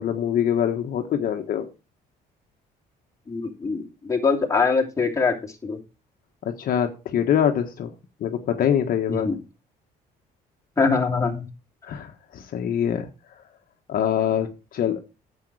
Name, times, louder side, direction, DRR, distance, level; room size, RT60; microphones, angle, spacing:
voice 1, 0.0-1.7 6.4-7.9 8.2-9.3 11.9-13.1 13.9-15.0, left 9 dB, 60° left, 5 dB, 1.4 m, -24 dB
voice 2, 3.3-5.4 5.6-5.8 9.1-9.4 10.8-11.5, left 4 dB, 20° left, 0 dB, 2.9 m, -23 dB
10.5 x 7.6 x 4.8 m, 0.29 s
cardioid pair, 110°, 17 cm